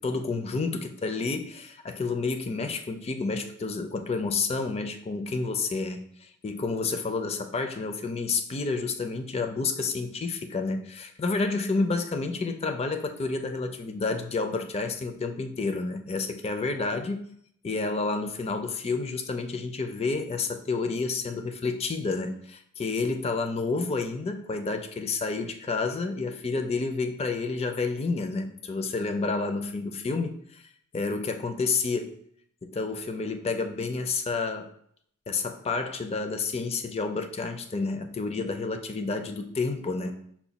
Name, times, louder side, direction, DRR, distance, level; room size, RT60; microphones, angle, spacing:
voice 1, 0.0-17.2 17.6-30.6 30.9-32.1 32.6-34.7 35.3-40.1, left 3 dB, 30° left, 6 dB, 0.4 m, -30 dB
5.8 x 2.2 x 4.0 m, 0.67 s
head